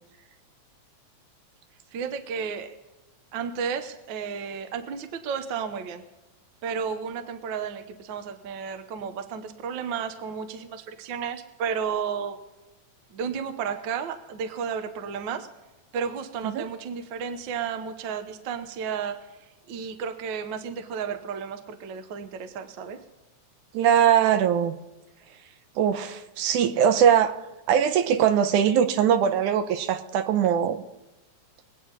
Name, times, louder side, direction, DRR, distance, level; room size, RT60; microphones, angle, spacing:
voice 1, 1.9-2.7 3.3-6.0 6.6-12.4 13.1-15.5 15.9-19.3 19.7-23.0, right 6 dB, 65° right, 8 dB, 1.2 m, -32 dB
voice 2, 23.7-24.8 25.8-27.3 27.7-30.8, right 8 dB, 85° right, 9 dB, 2.3 m, -21 dB
23.5 x 8.8 x 4.0 m, 1.1 s
omnidirectional pair, 3.4 m